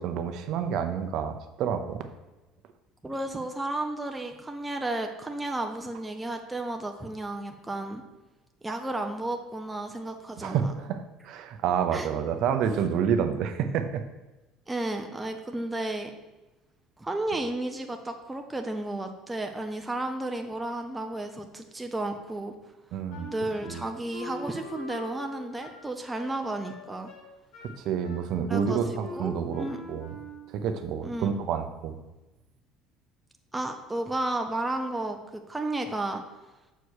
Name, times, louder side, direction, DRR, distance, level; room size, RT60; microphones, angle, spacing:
voice 1, 0.0-2.1 10.4-14.0 22.9-23.3 23.7-23.8 27.8-30.1 30.5-32.0, right 7 dB, 55° right, 7 dB, 0.7 m, -29 dB
voice 2, 3.0-8.0 8.6-10.7 11.9-12.1 14.7-16.1 17.0-22.5 23.3-27.1 28.5-29.8 31.0-31.3 33.5-36.2, right 2 dB, 5° right, 4 dB, 0.6 m, -33 dB
Wind instrument woodwind instrument, 23.1-30.6, left 1 dB, 85° left, 2.5 m, -43 dB
6.8 x 4.8 x 6.3 m, 1.1 s
cardioid pair, 155°, 0 cm